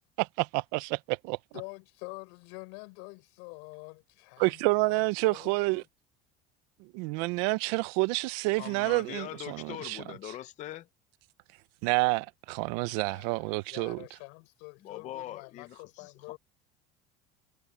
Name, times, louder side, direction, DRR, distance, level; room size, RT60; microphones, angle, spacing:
voice 1, 0.2-1.4 4.4-5.8 6.9-10.0 11.8-14.0, right 24 dB, 85° right, 0.7 m, -28 dB
voice 2, 1.5-5.9 12.8-16.4, left 34 dB, 80° left, 6.5 m, -47 dB
voice 3, 8.5-10.9 14.8-16.1, left 13 dB, 35° left, 0.6 m, -42 dB
cardioid pair, 150°, 20 cm